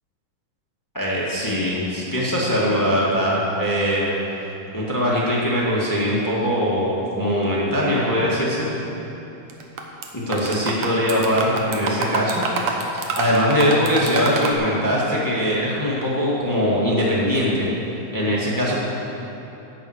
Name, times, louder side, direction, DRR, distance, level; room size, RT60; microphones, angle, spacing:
voice 1, 0.9-4.1 4.7-8.8 10.1-12.4 12.9-17.7 18.1-18.8, equal, 20° left, -5 dB, 0.5 m, -21 dB
sound 1, 9.5-10.1 10.3-14.5, right 4 dB, 65° right, 1.8 m, -26 dB
11.0 x 8.8 x 7.9 m, 3.0 s
omnidirectional pair, 4.0 m